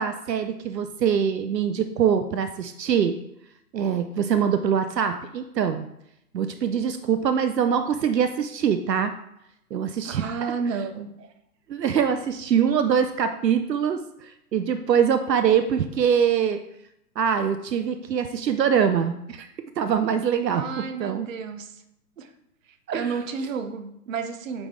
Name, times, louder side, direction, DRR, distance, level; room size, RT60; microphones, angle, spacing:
voice 1, 0.0-3.2 3.7-5.9 6.3-9.1 9.7-10.3 11.7-16.6 17.2-19.5 19.8-20.6 21.0-21.3 22.9-23.1, right 7 dB, 80° right, 9 dB, 0.7 m, -23 dB
voice 2, 10.0-11.1 20.5-21.8 22.2-22.3 22.9-24.7, right 5 dB, 55° right, 8 dB, 0.9 m, -31 dB
9.1 x 3.6 x 3.3 m, 0.80 s
hypercardioid pair, 130°, 49 cm